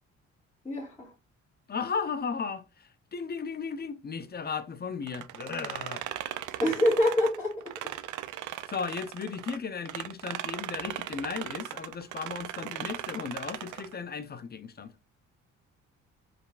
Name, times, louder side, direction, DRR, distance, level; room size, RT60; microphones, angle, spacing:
voice 1, 0.7-1.1 6.6-7.6, left 1 dB, 10° left, 1.8 m, -25 dB
voice 2, 1.7-6.0 8.4-14.9, left 5 dB, 30° left, 0.6 m, -36 dB
sound 1, 5.1-9.6 9.8-13.9, right 13 dB, 80° right, 0.5 m, -38 dB
5.1 x 3.4 x 2.4 m
cardioid pair, 90°, 30 cm